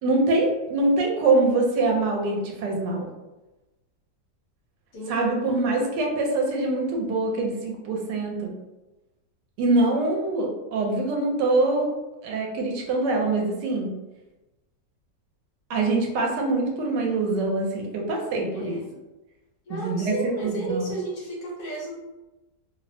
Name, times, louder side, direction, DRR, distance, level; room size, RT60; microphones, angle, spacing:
voice 1, 0.0-3.1 5.1-8.5 9.6-11.9 12.2-13.9 15.7-18.8 19.7-20.9, right 2 dB, 80° right, 0 dB, 1.2 m, -24 dB
voice 2, 18.5-18.9 19.7-21.9, right 2 dB, 65° left, -4 dB, 1.1 m, -33 dB
3.0 x 2.0 x 2.6 m, 1.1 s
omnidirectional pair, 1.9 m